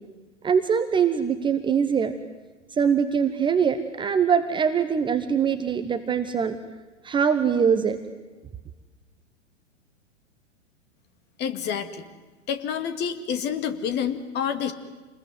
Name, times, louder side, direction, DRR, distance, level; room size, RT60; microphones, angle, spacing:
voice 1, 0.4-2.1 2.7-6.6 7.0-8.0, right 7 dB, 15° right, 9 dB, 1.1 m, -23 dB
voice 2, 11.4-12.0 12.5-14.7, left 8 dB, 25° left, 10 dB, 2.2 m, -28 dB
27.5 x 21.0 x 9.6 m, 1.2 s
figure-of-eight pair, 105°, 37 cm